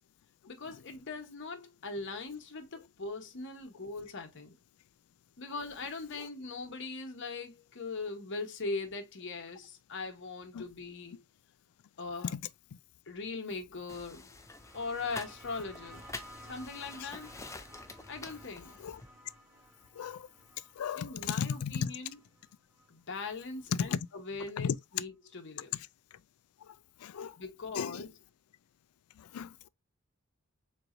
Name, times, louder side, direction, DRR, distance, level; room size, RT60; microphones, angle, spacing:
voice 1, 0.5-4.6 5.4-11.2 12.0-12.3 13.1-14.3 14.7-16.1 16.5-17.3 18.1-18.8 20.9-22.2 22.9-25.8 27.4-28.1, left 3 dB, 60° left, 1.0 m, -40 dB
sound 1, 13.9-19.1, left 3 dB, 15° left, 0.6 m, -47 dB
sound 2, 14.3-23.6 24.7-24.8, right 1 dB, 15° right, 2.9 m, -55 dB
voice 2, 19.9-20.3 20.8-21.9 23.7-24.0 24.6-24.7 26.6-26.7 27.0-27.4 27.7-28.1 29.2-29.7, left 7 dB, 80° left, 0.4 m, -35 dB
4.5 x 4.0 x 2.5 m
head